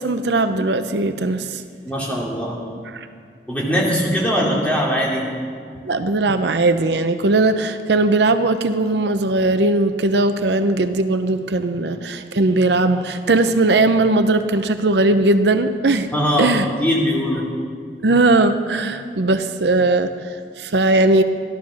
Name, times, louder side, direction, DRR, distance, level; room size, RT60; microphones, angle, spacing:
voice 1, 0.0-1.6 2.9-3.1 5.9-16.1 16.4-16.7 18.0-21.2, right 2 dB, 75° right, 9 dB, 0.7 m, -18 dB
voice 2, 1.9-2.6 3.5-5.3 16.1-17.4, equal, 10° left, -4 dB, 2.7 m, -21 dB
14.0 x 11.5 x 6.3 m, 2.2 s
head